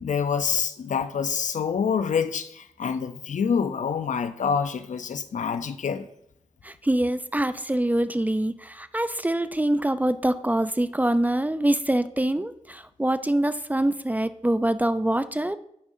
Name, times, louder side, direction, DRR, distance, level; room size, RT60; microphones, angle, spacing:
voice 1, 0.0-6.1, left 6 dB, 65° left, 0.6 m, -26 dB
voice 2, 6.6-15.6, right 1 dB, 10° right, 0.5 m, -24 dB
15.0 x 5.4 x 2.7 m
cardioid pair, 50°, 14 cm